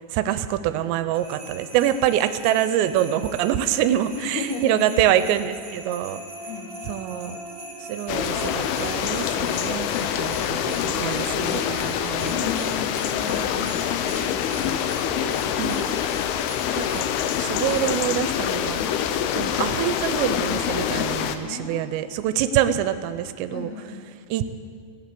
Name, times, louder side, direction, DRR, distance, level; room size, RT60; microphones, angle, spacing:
voice 1, 0.1-6.2 6.9-7.4 7.9-9.9 10.2-12.4 15.2-15.9 16.8-17.0 17.4-18.8 19.3-23.7 24.3-24.4, right 11 dB, 85° right, 11 dB, 2.8 m, -25 dB
sound 1, 1.1-18.0, right 1 dB, 25° right, 1.4 m, -43 dB
voice 2, 4.2-5.1 6.5-6.9 9.9-11.6 12.3-15.0 18.8-18.9 21.5-21.9 22.4-22.7 23.5-24.0, left 5 dB, 70° left, 3 dB, 2.7 m, -36 dB
sound 2, 5.2-14.2, left 1 dB, 30° left, 3.0 m, -42 dB
sound 3, 8.1-21.4, left 9 dB, 90° left, 2.3 m, -25 dB
17.0 x 8.3 x 6.7 m, 2.2 s
omnidirectional pair, 5.1 m